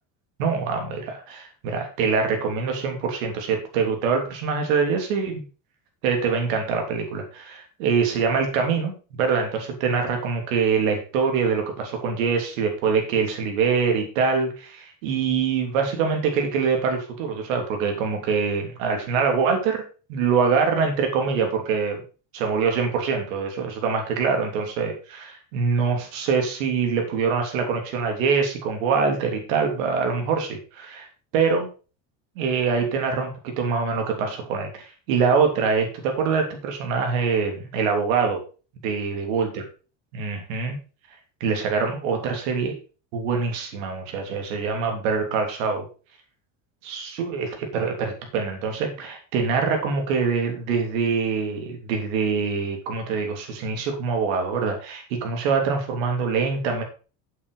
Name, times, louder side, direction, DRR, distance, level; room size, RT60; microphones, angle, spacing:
voice 1, 0.4-5.4 6.0-19.8 20.1-22.0 22.3-31.1 31.3-31.7 32.4-38.4 38.8-39.6 40.1-40.8 41.4-42.7 43.1-45.8 46.8-56.8, right 5 dB, 90° right, 3 dB, 3.2 m, -24 dB
8.3 x 8.1 x 5.0 m, 0.35 s
cardioid pair, 130°, 39 cm